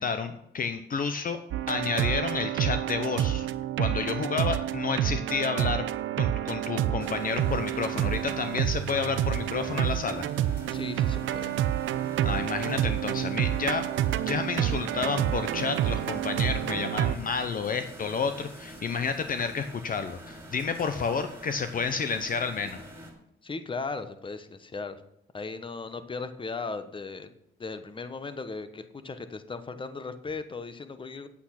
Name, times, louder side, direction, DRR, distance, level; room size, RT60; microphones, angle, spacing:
voice 1, 0.0-1.4 1.7-3.5 3.8-5.9 6.2-10.2 12.2-13.8 14.2-22.8, left 5 dB, 45° left, 9 dB, 0.8 m, -30 dB
sound 1, 1.5-17.2, right 12 dB, 75° right, 0.6 m, -28 dB
sound 2, 7.0-23.1, equal, 10° right, 3.5 m, -46 dB
voice 2, 10.7-11.5 23.4-25.0 25.3-27.3 27.6-31.3, left 4 dB, 25° left, 11 dB, 1.1 m, -37 dB
8.6 x 8.5 x 5.8 m, 0.78 s
cardioid pair, 90°, 20 cm